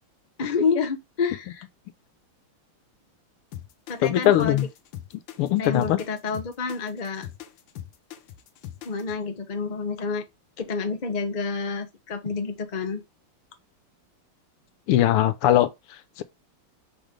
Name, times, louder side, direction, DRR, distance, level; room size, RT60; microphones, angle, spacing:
voice 1, 0.4-1.6 3.9-4.7 5.6-7.3 8.8-10.2 10.6-13.0, left 5 dB, 35° left, 0.7 m, -28 dB
sound 1, 3.5-9.2, left 11 dB, 70° left, 1.4 m, -41 dB
voice 2, 4.0-4.7 5.4-6.0 14.9-16.2, left 12 dB, 85° left, 1.7 m, -21 dB
5.9 x 3.1 x 5.1 m
omnidirectional pair, 2.4 m